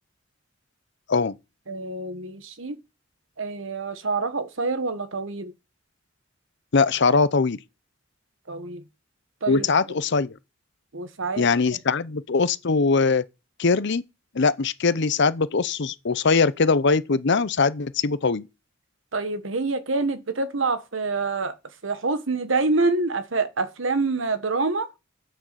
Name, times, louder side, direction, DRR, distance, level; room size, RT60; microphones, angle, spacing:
voice 1, 1.7-2.8 3.4-5.5 8.5-8.8 9.4-9.7 10.9-11.4 19.1-21.5 21.8-24.9, right 3 dB, 75° right, 1.3 m, -26 dB
voice 2, 6.7-7.6 9.5-10.4 11.4-13.2 13.6-14.0 14.3-18.5, left 4 dB, 60° left, 0.7 m, -21 dB
8.5 x 6.6 x 7.5 m
head